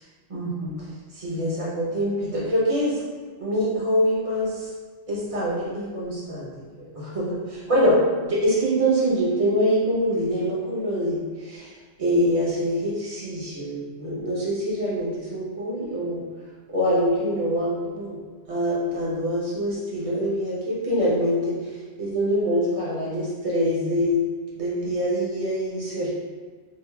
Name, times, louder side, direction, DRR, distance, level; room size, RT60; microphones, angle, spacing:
voice 1, 0.3-0.8 1.1-3.0 3.4-4.7 5.1-6.5 6.8-11.7 12.0-16.2 16.7-18.2 18.5-21.5 22.0-24.2 24.6-26.1, equal, 35° right, -7 dB, 0.9 m, -24 dB
3.0 x 2.5 x 3.5 m, 1.5 s
omnidirectional pair, 1.2 m